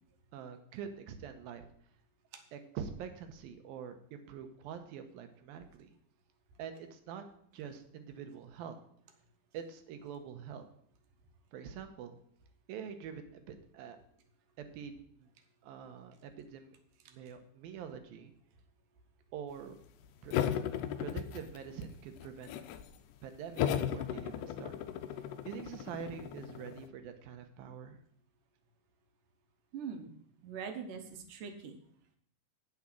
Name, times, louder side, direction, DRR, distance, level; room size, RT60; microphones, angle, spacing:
voice 1, 0.3-1.6 2.5-5.9 6.6-7.3 7.5-8.8 9.5-10.7 11.5-12.2 12.7-14.0 14.6-15.3 15.6-16.7 17.1-18.3 19.3-19.8 20.2-20.4 21.0-22.5 23.2-24.8 25.4-28.0, right 7 dB, 85° right, 7 dB, 2.8 m, -45 dB
sound 1, 20.3-21.8 22.2-22.9 23.6-26.9, left 10 dB, 80° left, 1.8 m, -36 dB
voice 2, 29.7-30.1 30.4-31.8, right 6 dB, 70° right, 6 dB, 2.5 m, -42 dB
8.7 x 7.7 x 6.0 m, 0.65 s
omnidirectional pair, 4.1 m